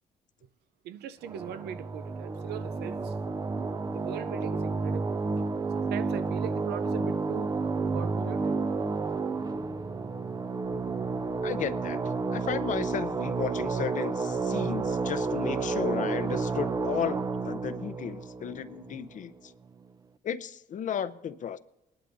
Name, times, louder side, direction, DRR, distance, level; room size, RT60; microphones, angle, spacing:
voice 1, 0.8-3.4 3.9-5.5 5.7-7.6 7.9-8.6, right 10 dB, 80° right, 0.6 m, -40 dB
sound 1, 1.2-19.4, right 4 dB, 25° right, 0.5 m, -31 dB
voice 2, 11.4-12.0 12.3-19.5 20.2-21.6, left 8 dB, 50° left, 0.6 m, -34 dB
19.5 x 11.5 x 2.7 m
cardioid pair, 115°, 17 cm